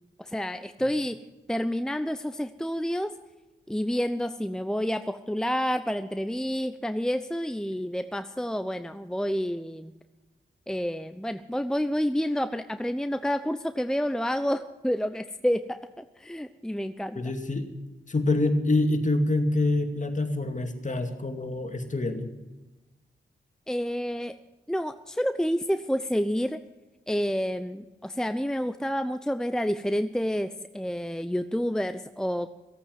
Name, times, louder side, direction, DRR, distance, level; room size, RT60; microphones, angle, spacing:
voice 1, 0.2-1.2 1.5-3.1 3.7-9.9 10.7-17.2 23.7-24.3 24.7-26.6 27.1-32.5, equal, 5° left, 10 dB, 0.8 m, -29 dB
voice 2, 17.2-17.7 18.1-22.3, left 2 dB, 40° left, 6 dB, 2.4 m, -26 dB
16.0 x 8.7 x 9.5 m, 1.1 s
cardioid pair, 50°, 20 cm